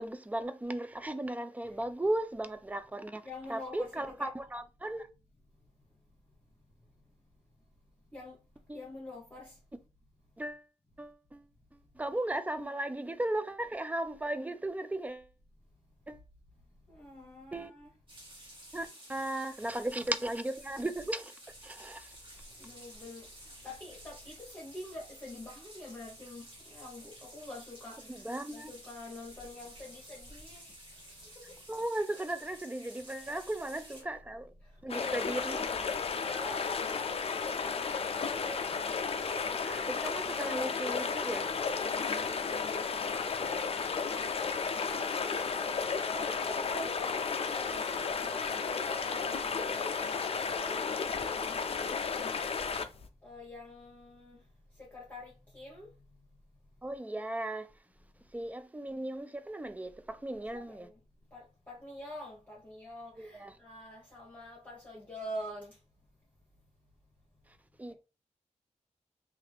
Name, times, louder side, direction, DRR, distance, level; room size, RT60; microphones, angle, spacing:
voice 1, 0.0-3.2 3.5-5.1 8.7-8.8 10.4-10.6 11.0-11.4 12.0-15.2 16.1-16.2 17.5-17.7 18.7-21.3 21.6-22.0 28.3-28.7 31.7-34.5 34.8-35.5 39.6-41.5 56.8-57.7 58.3-60.9 63.2-63.5 67.8-67.9, right 1 dB, 10° right, 0.4 m, -36 dB
voice 2, 3.2-4.3 8.1-8.4 8.7-9.5 16.9-17.9 22.6-23.2 23.6-26.4 26.7-28.0 28.5-30.6 33.2-33.4 33.7-34.1 34.8-38.6 41.4-43.3 44.0-47.8 48.2-50.2 50.5-51.9 53.2-54.4 54.9-55.9 60.3-60.9 61.3-65.7, left 1 dB, 15° left, 1.1 m, -46 dB
sound 1, 18.1-34.0, right 1 dB, 45° right, 1.4 m, -52 dB
sound 2, 34.9-53.1, left 5 dB, 50° left, 0.4 m, -33 dB
2.8 x 2.5 x 3.2 m
wide cardioid pair, 100°, 12 cm